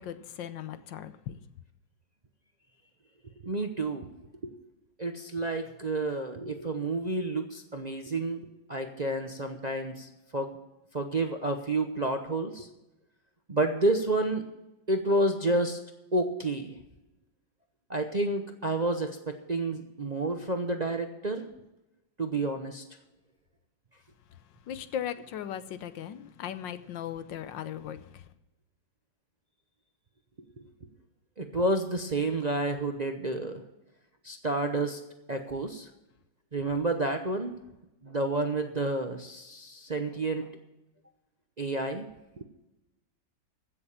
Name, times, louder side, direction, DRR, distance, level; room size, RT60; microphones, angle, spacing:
voice 1, 0.0-1.4 24.7-28.3, left 10 dB, 85° left, 1.5 m, -38 dB
voice 2, 3.4-4.1 4.4-4.5 5.0-10.6 10.9-12.7 13.5-14.5 14.9-15.8 16.1-16.7 17.9-21.5 22.2-22.8 30.6-30.7 31.4-33.6 34.2-35.0 35.3-35.9 36.5-37.5 38.0-40.5 41.6-42.1 42.4-42.5, right 2 dB, 35° right, 0.6 m, -30 dB
15.5 x 7.1 x 7.2 m
omnidirectional pair, 2.0 m